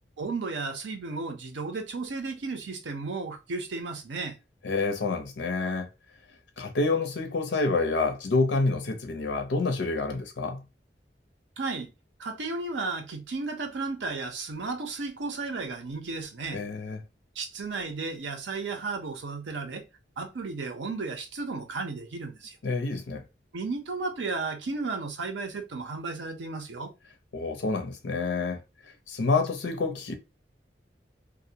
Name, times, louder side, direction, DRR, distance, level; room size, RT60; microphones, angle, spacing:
voice 1, 0.2-4.3 11.6-11.9 12.2-16.6 17.4-19.9 20.2-22.6 23.5-26.9, right 3 dB, 85° right, 0.6 m, -34 dB
voice 2, 4.6-5.9 6.6-10.6 16.5-17.0 22.6-23.2 27.3-28.6 29.1-30.1, left 3 dB, 85° left, 0.6 m, -28 dB
2.4 x 2.0 x 2.7 m
head